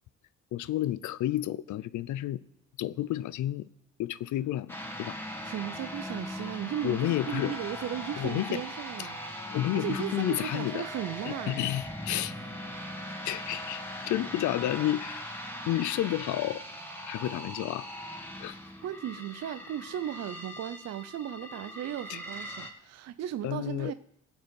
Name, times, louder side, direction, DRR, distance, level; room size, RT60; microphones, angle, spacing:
voice 1, 0.5-2.4 2.8-3.7 4.0-5.2 6.8-7.5 8.2-8.6 9.0-9.1 9.5-10.9 11.3-12.3 13.2-15.3 15.7-16.6 17.0-17.9 18.4-18.6 22.1-22.2 23.4-23.9, left 13 dB, 75° left, 0.6 m, -31 dB
sound 1, 4.7-22.7, equal, 5° left, 2.0 m, -40 dB
voice 2, 5.4-9.2 9.7-11.7 18.8-23.9, right 11 dB, 60° right, 0.6 m, -36 dB
18.0 x 8.0 x 5.3 m
cardioid pair, 90°, 30 cm